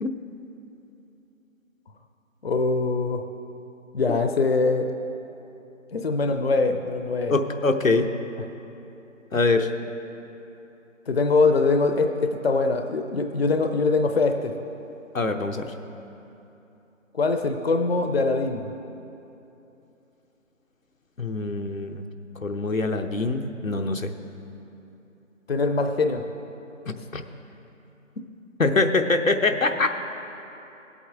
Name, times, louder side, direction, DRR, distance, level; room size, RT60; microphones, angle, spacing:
voice 1, 2.4-3.2 3.9-4.9 5.9-7.3 11.1-14.6 17.1-18.7 25.5-26.3, left 3 dB, 50° left, 6 dB, 0.6 m, -23 dB
voice 2, 7.3-8.1 9.3-9.7 15.1-15.7 21.2-22.0 22.4-24.1 26.9-27.2 28.6-29.9, left 3 dB, 90° left, 6 dB, 0.9 m, -24 dB
16.5 x 8.5 x 3.6 m, 2.9 s
figure-of-eight pair, 155°, 39 cm